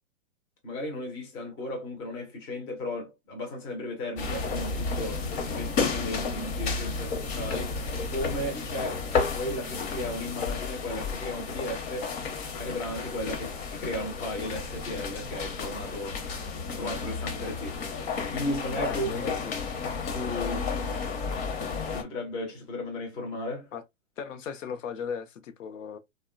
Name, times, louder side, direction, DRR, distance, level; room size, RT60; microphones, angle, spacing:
voice 1, 0.6-7.7 8.1-9.1 9.3-12.1 12.6-16.2 16.8-17.8 18.3-19.3 20.0-20.7 21.9-23.7, left 1 dB, 15° left, 0.4 m, -35 dB
sound 1, 4.2-22.0, left 4 dB, 55° left, 0.8 m, -32 dB
voice 2, 18.8-19.6 23.7-23.8 24.2-26.0, left 6 dB, 85° left, 0.6 m, -37 dB
2.9 x 2.1 x 2.3 m
hypercardioid pair, 145°, 37 cm